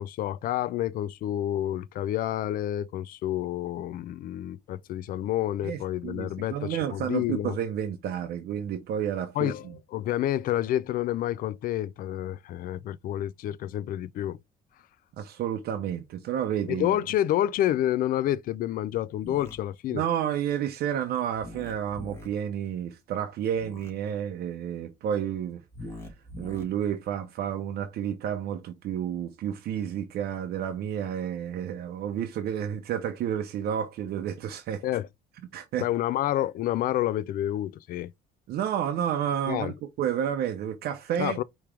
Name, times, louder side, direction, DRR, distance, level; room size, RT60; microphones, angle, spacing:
voice 1, 0.0-7.6 9.4-14.4 16.7-20.0 34.8-35.1 35.8-38.1 39.5-39.7 41.2-41.4, left 13 dB, 55° left, 0.4 m, -29 dB
voice 2, 5.6-9.5 15.2-17.0 19.9-25.6 26.4-34.8 35.5-35.9 38.5-41.4, right 9 dB, 65° right, 0.7 m, -30 dB
sound 1, 19.2-19.5 21.3-22.3 23.5-23.9 25.7-26.6, left 1 dB, 15° left, 2.2 m, -42 dB
4.9 x 3.1 x 3.3 m
cardioid pair, 110°, 17 cm